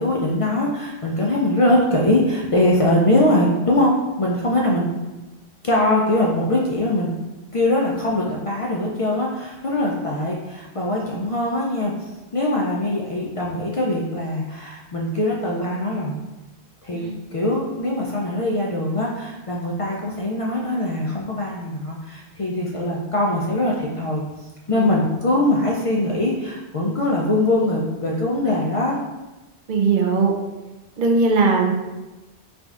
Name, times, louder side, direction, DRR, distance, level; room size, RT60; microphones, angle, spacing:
voice 1, 0.0-4.9 5.6-7.1 7.5-11.9 12.3-16.2 16.8-17.1 17.3-24.2 24.7-29.0, left 1 dB, 65° left, -3 dB, 0.3 m, -22 dB
voice 2, 29.7-30.3 31.0-31.7, right 4 dB, 60° right, 2 dB, 0.6 m, -19 dB
4.6 x 2.5 x 2.4 m, 1.1 s
omnidirectional pair, 1.1 m